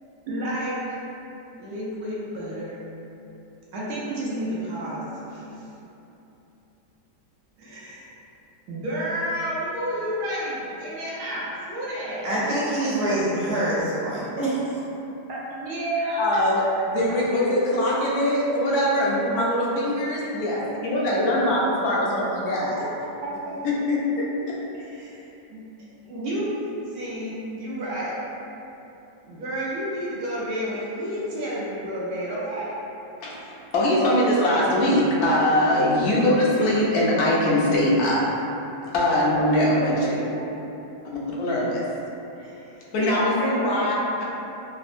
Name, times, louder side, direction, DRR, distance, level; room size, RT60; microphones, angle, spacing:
voice 1, 0.3-1.0 1.6-2.8 3.7-5.8 7.6-8.1 8.7-12.3 15.3-16.3 16.8-17.1 22.8-23.6 24.7-25.6 26.1-26.6 26.9-28.2 29.2-32.8 40.3-40.5 42.3-43.9, equal, 70° right, -7 dB, 1.1 m, -31 dB
voice 2, 12.2-14.8, right 1 dB, 50° right, -11 dB, 0.8 m, -25 dB
voice 3, 16.2-22.8 23.6-24.6 33.2-38.2 38.9-40.2 41.0-41.8 42.9-43.9 44.2-44.3, left 1 dB, 70° left, -5 dB, 1.0 m, -22 dB
3.4 x 2.0 x 2.4 m, 2.9 s
omnidirectional pair, 1.9 m